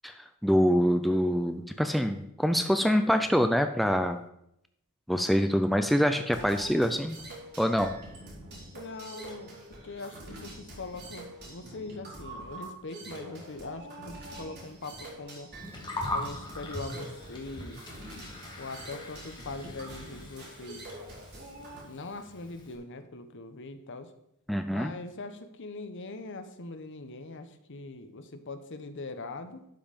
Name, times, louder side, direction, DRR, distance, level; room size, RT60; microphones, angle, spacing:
voice 1, 0.0-4.2 5.1-7.2 7.6-7.9 24.5-24.9, equal, ahead, 6 dB, 0.4 m, -25 dB
sound 1, 6.3-21.8, right 1 dB, 50° right, 3.4 m, -45 dB
voice 2, 8.7-9.6 9.8-15.5 16.1-17.9 18.6-20.9 21.8-24.1 24.7-29.7, left 3 dB, 55° left, 9 dB, 0.9 m, -41 dB
Gurgling, 15.5-22.7, left 1 dB, 20° left, 2.0 m, -41 dB
11.5 x 5.4 x 5.2 m, 0.77 s
head